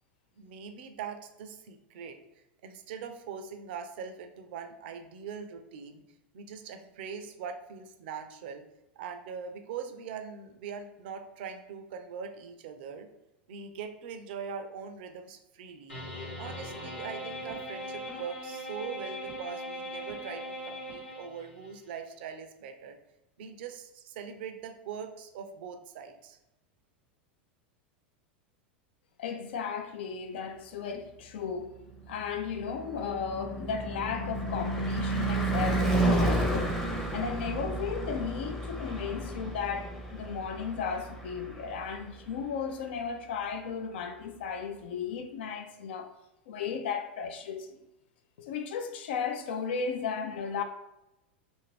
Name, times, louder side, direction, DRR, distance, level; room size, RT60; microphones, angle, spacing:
voice 1, 0.4-2.2 2.6-6.0 6.3-8.6 9.0-13.1 13.5-16.0 16.4-23.0 23.4-26.4, right 6 dB, 65° right, 0.4 m, -42 dB
sound 1, 15.9-21.7, equal, 90° left, 1.1 m, -40 dB
voice 2, 29.2-31.7 32.1-36.7 37.1-46.1 46.5-47.8 48.4-50.6, left 6 dB, 70° left, 0.4 m, -35 dB
Car passing by / Truck / Engine, 31.9-42.2, right 2 dB, 5° left, 0.6 m, -31 dB
2.6 x 2.5 x 3.2 m
hypercardioid pair, 95°, 6 cm